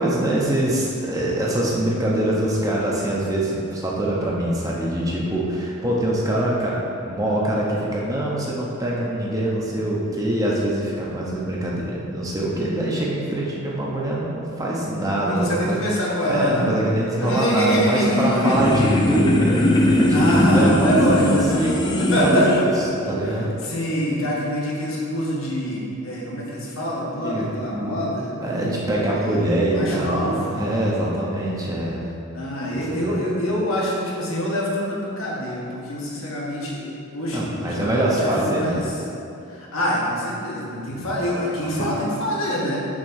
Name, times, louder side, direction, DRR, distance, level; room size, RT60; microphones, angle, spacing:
voice 1, 0.0-23.5 27.2-28.0 28.4-32.0 32.7-33.2 37.3-38.9 40.9-41.1 41.6-41.9, right 1 dB, 15° right, -4 dB, 0.7 m, -24 dB
voice 2, 15.2-16.7 17.2-18.6 20.1-21.6 22.0-22.8 23.6-28.3 28.9-30.7 32.3-38.8 39.5-42.8, equal, 70° left, -5 dB, 1.5 m, -25 dB
sound 1, 17.7-22.6, left 1 dB, 20° left, 0.4 m, -19 dB
6.3 x 3.7 x 6.2 m, 2.7 s
head